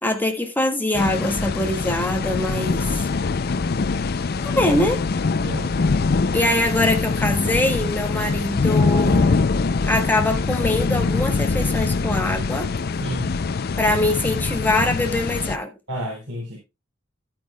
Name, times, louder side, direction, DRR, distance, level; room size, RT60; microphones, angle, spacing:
voice 1, 0.0-3.0 4.4-5.0 6.3-9.4 9.9-12.7 13.8-15.7, left 1 dB, 10° left, 1.5 m, -23 dB
sound 1, 0.9-15.6, left 4 dB, 50° left, 0.5 m, -23 dB
voice 2, 5.4-5.7 12.9-13.4 15.9-16.6, equal, 60° right, 3.6 m, -30 dB
12.0 x 8.9 x 2.3 m
head